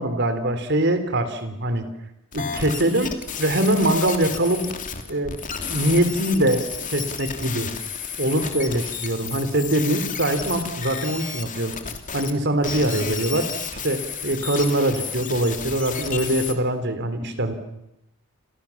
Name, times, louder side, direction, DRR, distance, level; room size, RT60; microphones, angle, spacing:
voice 1, 0.0-1.9 2.3-4.7 5.1-5.4 5.7-7.7 8.2-11.7 12.1-13.5 13.8-17.5, right 1 dB, 50° right, 10 dB, 3.5 m, -23 dB
sound 1, 2.3-12.3 12.6-16.5, left 7 dB, 35° left, 2.8 m, -32 dB
29.0 x 28.0 x 7.3 m, 0.86 s
head